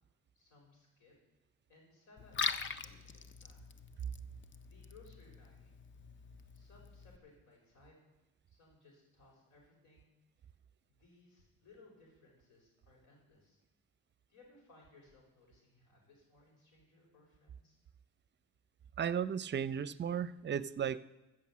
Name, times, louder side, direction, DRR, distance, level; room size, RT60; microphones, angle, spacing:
voice 1, 0.3-1.1 1.7-2.4 2.8-3.7 4.6-5.8 6.5-8.0 8.5-10.2 10.9-13.6 14.3-17.8, left 3 dB, 85° left, -1 dB, 5.3 m, -63 dB
Liquid, 2.2-7.2, left 6 dB, 40° left, 0.7 m, -43 dB
voice 2, 19.0-21.0, right 8 dB, 35° right, 16 dB, 0.5 m, -35 dB
14.5 x 6.3 x 7.3 m, 1.1 s
cardioid pair, 90°, 30 cm